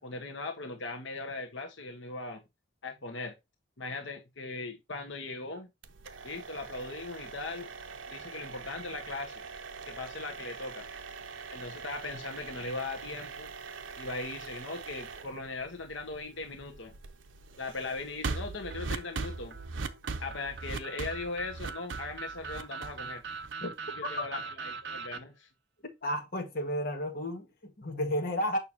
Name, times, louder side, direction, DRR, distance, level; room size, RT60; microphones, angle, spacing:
voice 1, 0.0-2.4 2.8-3.3 3.8-5.7 6.2-7.7 8.1-9.4 9.9-10.9 11.5-13.5 14.0-16.9 17.6-19.6 20.2-23.2 24.0-25.5, left 3 dB, 80° left, 1.3 m, -39 dB
sound 1, 5.8-23.8, right 4 dB, 90° right, 0.8 m, -42 dB
sound 2, 18.7-25.2, right 5 dB, 60° right, 0.9 m, -42 dB
voice 2, 26.0-28.6, equal, 50° left, 1.8 m, -32 dB
6.8 x 5.7 x 2.7 m
head